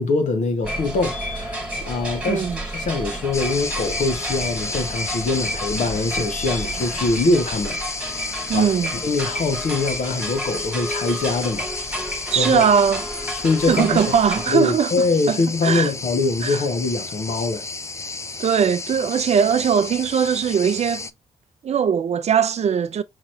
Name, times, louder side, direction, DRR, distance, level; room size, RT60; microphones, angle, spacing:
voice 1, 0.0-7.8 8.5-11.7 12.0-12.1 12.4-12.6 13.3-14.1 14.5-17.6, left 3 dB, 70° left, 1.1 m, -23 dB
sound 1, 0.6-14.5, equal, 10° right, 1.4 m, -31 dB
voice 2, 2.3-2.6 8.5-8.9 12.3-13.0 13.7-15.4 15.6-15.9 16.4-16.6 18.4-21.1 21.6-23.0, right 7 dB, 55° right, 0.5 m, -20 dB
sound 2, 3.3-21.1, left 3 dB, 20° left, 0.4 m, -32 dB
4.8 x 2.9 x 2.5 m
supercardioid pair, 40°, 13 cm